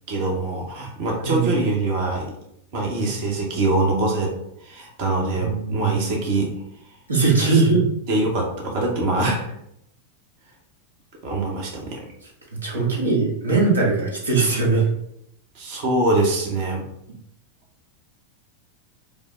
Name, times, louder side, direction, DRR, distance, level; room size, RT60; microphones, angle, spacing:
voice 1, 0.1-2.3 2.7-4.3 4.6-6.5 7.5-7.6 8.1-9.6 11.2-12.0 12.7-13.0 15.5-16.9, right 2 dB, 45° right, 0 dB, 1.0 m, -24 dB
voice 2, 1.2-1.5 5.4-6.0 7.1-7.9 12.6-14.9, right 4 dB, 75° right, -3 dB, 1.3 m, -20 dB
5.2 x 2.1 x 3.7 m, 0.76 s
figure-of-eight pair, 90°, 0 cm